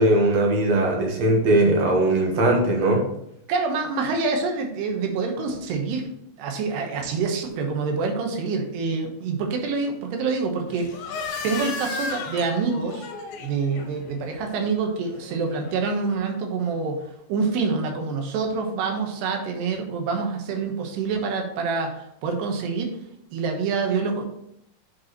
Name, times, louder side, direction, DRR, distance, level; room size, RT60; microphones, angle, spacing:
voice 1, 0.0-3.0, right 1 dB, 60° right, 0 dB, 1.9 m, -19 dB
voice 2, 3.5-6.1 6.4-11.2 11.4-13.1 13.4-22.9 23.3-24.3, right 4 dB, 85° right, 3 dB, 3.4 m, -26 dB
sound 1, 10.7-16.1, left 4 dB, 70° left, 2.7 m, -36 dB
10.0 x 5.3 x 3.1 m, 0.76 s
omnidirectional pair, 4.7 m